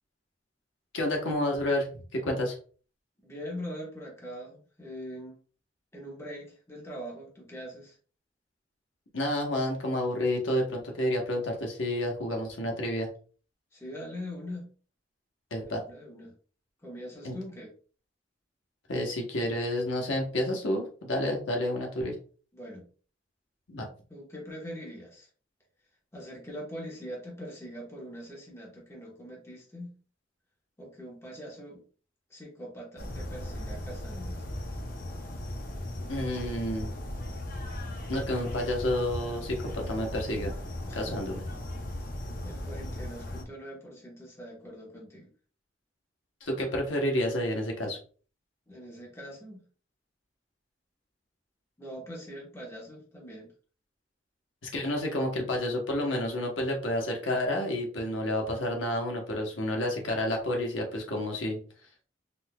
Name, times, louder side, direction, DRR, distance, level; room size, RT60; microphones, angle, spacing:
voice 1, 0.9-2.6 9.1-13.1 15.5-15.8 17.2-17.4 18.9-22.1 23.7-23.8 36.1-36.9 38.1-40.5 40.9-41.4 46.4-48.0 54.7-61.6, left 1 dB, 85° left, 1 dB, 1.0 m, -30 dB
voice 2, 3.2-5.4 5.9-8.0 13.7-14.7 15.7-16.3 16.8-17.7 22.5-22.9 24.1-25.3 26.1-29.9 30.8-31.8 32.3-34.5 40.9-41.2 42.4-45.3 48.7-49.6 51.8-53.5, equal, 15° left, -3 dB, 1.1 m, -42 dB
sound 1, 33.0-43.4, left 1 dB, 50° left, 0.8 m, -37 dB
4.2 x 2.7 x 2.2 m, 0.39 s
head